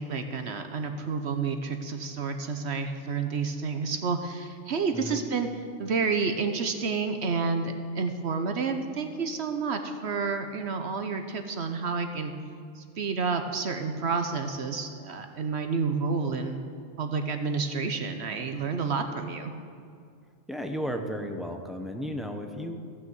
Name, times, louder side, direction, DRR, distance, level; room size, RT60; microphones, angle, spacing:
voice 1, 0.0-5.5 5.8-12.3 12.8-16.6 17.0-19.5, right 4 dB, 60° right, 6 dB, 1.0 m, -30 dB
voice 2, 20.5-22.8, equal, ahead, 4 dB, 0.7 m, -34 dB
15.5 x 6.2 x 7.7 m, 2.3 s
omnidirectional pair, 1.3 m